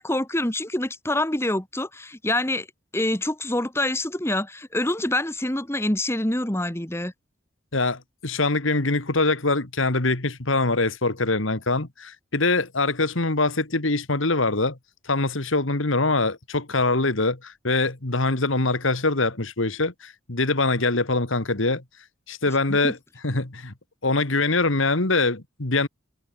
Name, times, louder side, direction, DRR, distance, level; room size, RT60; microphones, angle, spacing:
voice 1, 0.0-2.7 2.9-7.1 22.7-22.9, left 1 dB, 10° left, 1.6 m, -26 dB
voice 2, 7.7-14.8 15.1-21.8 22.3-23.0 23.2-23.7 24.0-25.9, left 3 dB, 70° left, 2.2 m, -23 dB
head